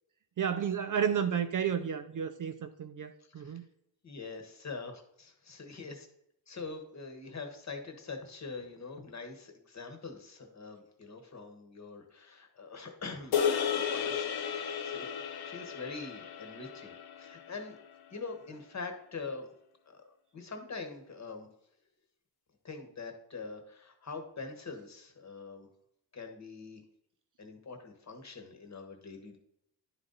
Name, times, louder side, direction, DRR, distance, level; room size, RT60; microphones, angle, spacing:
voice 1, 0.4-3.6, right 8 dB, 45° right, 8 dB, 0.5 m, -32 dB
voice 2, 4.0-6.0 6.5-15.1 15.4-17.8 18.1-19.5 19.9-20.0 20.3-21.5 22.6-25.7 26.1-26.8 27.4-29.4, left 4 dB, 35° left, 5 dB, 1.2 m, -44 dB
sound 1, 13.3-17.8, left 7 dB, 50° left, 0.8 m, -33 dB
10.5 x 3.9 x 3.9 m, 0.74 s
wide cardioid pair, 145°, 47 cm